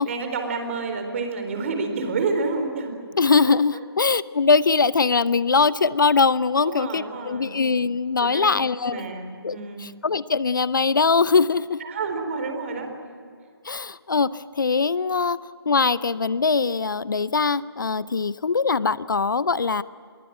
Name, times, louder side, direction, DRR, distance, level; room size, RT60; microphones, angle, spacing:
voice 1, 0.1-2.9 3.7-3.8 6.6-7.6 8.2-8.5 8.9-9.9 11.8-12.9, right 4 dB, 30° right, 5 dB, 4.2 m, -29 dB
voice 2, 3.2-9.0 9.4-11.8 13.6-15.4 15.7-19.8, left 4 dB, 55° left, 19 dB, 0.6 m, -22 dB
25.0 x 22.5 x 8.9 m, 2.2 s
figure-of-eight pair, 150°, 13 cm